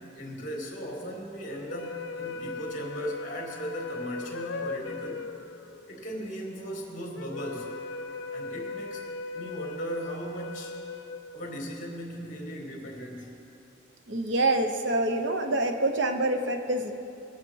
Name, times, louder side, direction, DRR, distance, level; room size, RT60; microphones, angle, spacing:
voice 1, 0.0-5.3 5.9-7.7 8.3-9.0 9.3-10.8 11.3-13.5, equal, 40° left, -1 dB, 2.3 m, -37 dB
sound 1, 1.5-11.9, left 3 dB, 90° left, 0.7 m, -38 dB
voice 2, 14.1-16.9, right 2 dB, 70° right, 5 dB, 1.0 m, -26 dB
21.0 x 7.6 x 4.7 m, 2.7 s
head